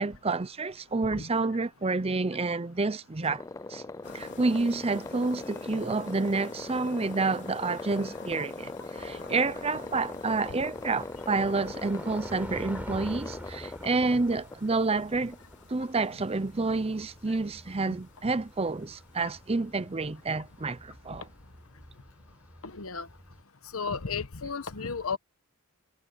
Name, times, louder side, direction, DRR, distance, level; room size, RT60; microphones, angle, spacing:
voice 1, 0.0-3.4 3.7-3.8 4.1-15.4 15.7-21.2, right 3 dB, 30° right, 0.6 m, -29 dB
sound 1, 3.2-15.8, left 3 dB, 15° left, 0.3 m, -40 dB
sound 2, 4.0-21.9, left 4 dB, 55° left, 4.0 m, -52 dB
sound 3, 9.0-23.4, equal, 5° right, 4.0 m, -49 dB
voice 2, 22.6-23.1 23.7-25.2, left 5 dB, 75° left, 1.2 m, -34 dB
head